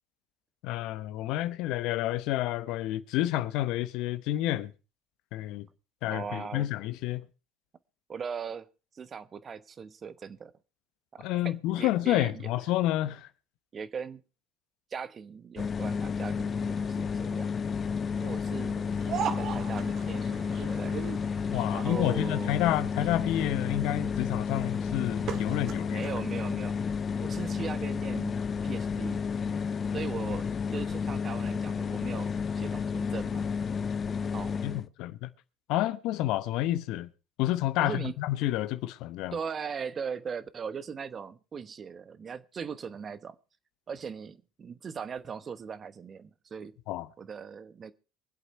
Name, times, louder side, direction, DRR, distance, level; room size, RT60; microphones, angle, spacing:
voice 1, 0.6-4.7 5.3-5.7 6.0-7.3 11.2-13.3 21.5-26.1 34.6-35.3 35.7-37.1 37.4-39.4 46.9-47.1, left 14 dB, 65° left, 0.9 m, -29 dB
voice 2, 6.0-6.7 8.1-8.7 8.9-10.5 11.1-12.3 13.7-14.2 14.9-17.5 18.2-18.9 19.4-21.0 21.7-22.5 25.9-26.7 27.2-29.3 29.9-33.5 34.3-34.5 37.8-38.1 39.3-43.4 43.9-46.7 47.2-47.9, right 6 dB, 35° right, 1.0 m, -39 dB
sound 1, 15.6-34.9, left 6 dB, 35° left, 0.6 m, -31 dB
sound 2, 18.9-26.1, right 8 dB, 55° right, 1.6 m, -39 dB
24.0 x 8.1 x 4.4 m
hypercardioid pair, 80°, 0 cm